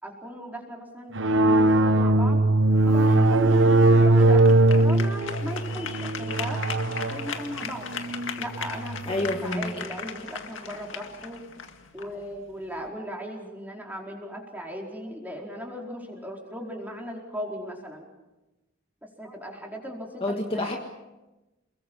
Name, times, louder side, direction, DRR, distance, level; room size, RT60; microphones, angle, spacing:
voice 1, 0.0-2.4 2.9-6.6 7.1-7.9 8.4-11.4 11.9-18.0 19.2-20.6, equal, 10° right, -1 dB, 4.7 m, -37 dB
sound 1, 1.1-9.3, right 2 dB, 65° right, 1.1 m, -20 dB
sound 2, 2.8-12.9, left 6 dB, 75° left, 2.0 m, -38 dB
voice 2, 9.1-9.9 20.2-20.8, left 1 dB, 30° left, 1 dB, 1.8 m, -28 dB
29.0 x 21.5 x 5.5 m, 1.0 s
head